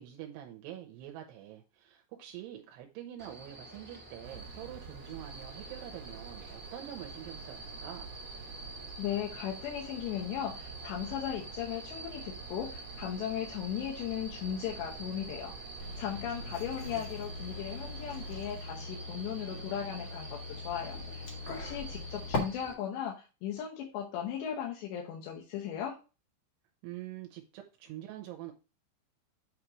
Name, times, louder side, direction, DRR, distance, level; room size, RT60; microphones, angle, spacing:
voice 1, 0.0-8.2 16.1-17.1 26.8-28.5, right 12 dB, 85° right, 3 dB, 2.7 m, -46 dB
sound 1, 3.2-22.7, right 1 dB, 30° right, 0.9 m, -47 dB
sound 2, 4.2-18.6, right 6 dB, 70° right, 2.4 m, -49 dB
voice 2, 9.0-15.5 16.0-26.0, left 9 dB, 85° left, -1 dB, 3.2 m, -37 dB
sound 3, 15.8-22.4, left 3 dB, 65° left, 1.2 m, -41 dB
8.4 x 3.0 x 4.8 m, 0.31 s
omnidirectional pair, 5.0 m